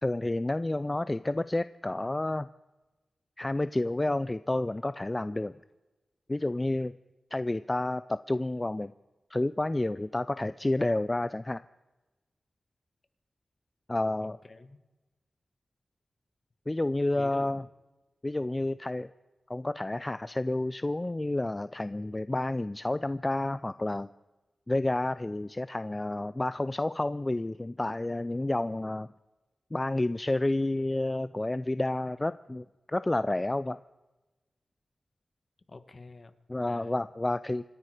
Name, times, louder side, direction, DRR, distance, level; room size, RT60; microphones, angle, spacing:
voice 1, 0.0-2.5 3.4-5.5 6.3-6.9 7.3-8.9 9.3-11.6 13.9-14.4 16.7-17.6 18.2-19.1 19.5-24.1 24.7-29.1 29.7-33.8 36.5-37.6, left 2 dB, 25° left, 14 dB, 0.4 m, -30 dB
voice 2, 14.2-14.8 17.1-17.7 35.7-36.3 36.7-36.9, left 3 dB, 45° left, 11 dB, 1.5 m, -48 dB
26.0 x 10.5 x 4.9 m, 1.1 s
cardioid pair, 55°, 0 cm